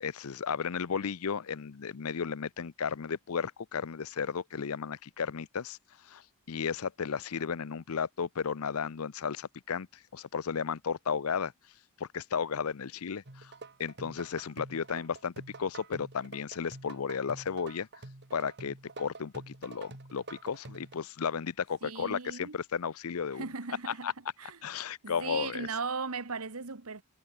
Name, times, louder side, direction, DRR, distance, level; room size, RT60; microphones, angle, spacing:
voice 1, 0.0-5.8 6.1-6.2 6.5-9.9 10.1-11.5 12.0-13.5 13.8-17.9 18.3-23.4 23.9-24.1 24.6-25.7, left 6 dB, 75° left, 0.6 m, -34 dB
sound 1, 13.3-20.9, right 2 dB, 50° right, 2.1 m, -48 dB
voice 2, 21.8-22.6 23.3-24.1 24.4-24.6 25.0-27.0, right 4 dB, 75° right, 1.5 m, -37 dB
head